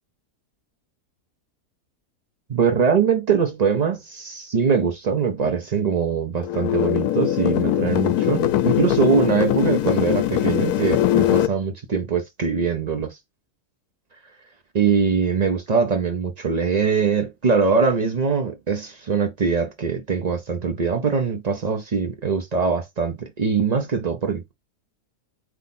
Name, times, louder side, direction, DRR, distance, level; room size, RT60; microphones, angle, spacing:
voice 1, 2.5-13.2 14.7-24.5, right 5 dB, 80° right, 0.3 m, -22 dB
sound 1, 6.4-11.5, left 12 dB, 75° left, 1.0 m, -21 dB
4.2 x 3.0 x 4.0 m
omnidirectional pair, 1.7 m